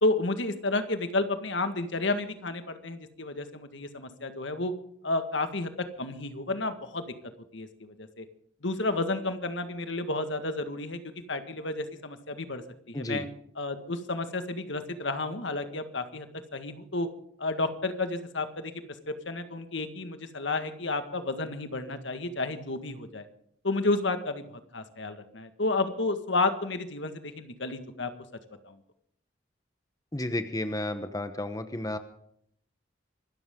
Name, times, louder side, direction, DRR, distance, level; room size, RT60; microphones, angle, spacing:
voice 1, 0.0-4.7 5.0-5.7 6.0-7.1 7.5-8.3 8.6-11.0 11.3-13.3 13.6-16.3 16.5-17.1 17.4-18.7 19.1-23.3 23.6-28.1 28.6-28.8, left 2 dB, 70° left, 9 dB, 1.8 m, -31 dB
voice 2, 30.1-32.0, left 1 dB, 20° left, 9 dB, 1.0 m, -32 dB
25.0 x 13.5 x 3.8 m, 0.70 s
head